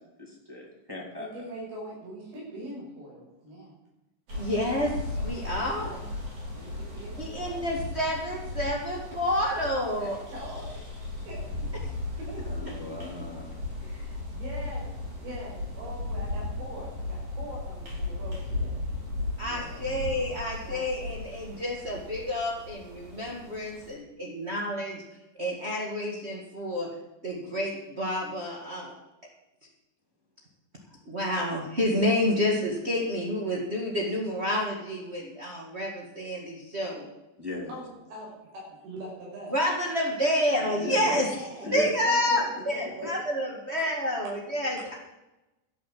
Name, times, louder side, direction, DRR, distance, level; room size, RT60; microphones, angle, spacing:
voice 1, 0.2-1.3 4.4-4.5 12.5-13.5 19.4-20.4 37.4-37.8 40.7-41.3 41.6-41.9, left 1 dB, 10° right, -2 dB, 1.7 m, -37 dB
voice 2, 1.2-3.8 5.8-6.2 6.5-7.7 10.0-11.0 11.3-11.4 12.1-12.7 13.8-18.8 20.7-20.9 37.7-38.3 38.5-39.6 41.1-41.7 42.0-43.1, right 1 dB, 85° right, -3 dB, 8.1 m, -42 dB
sound 1, 4.3-23.9, left 2 dB, 45° right, 6.2 m, -36 dB
voice 3, 4.3-6.0 7.2-10.2 19.4-25.0 25.4-26.9 27.2-28.9 31.0-37.1 39.5-41.3 41.7-44.9, left 1 dB, 65° right, -3 dB, 0.6 m, -29 dB
12.5 x 8.7 x 7.7 m, 0.98 s
omnidirectional pair, 4.9 m